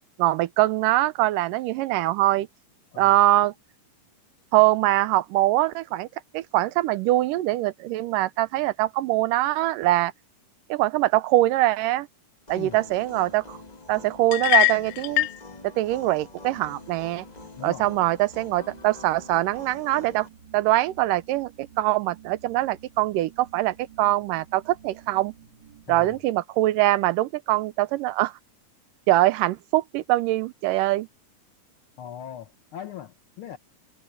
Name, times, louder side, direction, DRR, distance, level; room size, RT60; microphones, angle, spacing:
voice 1, 0.2-2.5 3.0-3.5 4.5-6.1 6.3-10.1 10.7-12.1 12.5-13.6 13.9-15.3 15.6-17.3 17.6-20.3 20.5-25.3 25.9-28.3 29.1-31.1, right 16 dB, 85° right, 2.3 m, -23 dB
sound 1, 12.5-20.3, left 3 dB, 35° left, 0.6 m, -45 dB
sound 2, 13.8-26.2, right 8 dB, 35° right, 2.4 m, -53 dB
sound 3, 14.3-15.4, left 18 dB, 85° left, 1.7 m, -22 dB
voice 2, 17.6-17.9 25.9-26.2 32.0-33.6, left 10 dB, 65° left, 1.3 m, -40 dB
omnidirectional pair, 3.8 m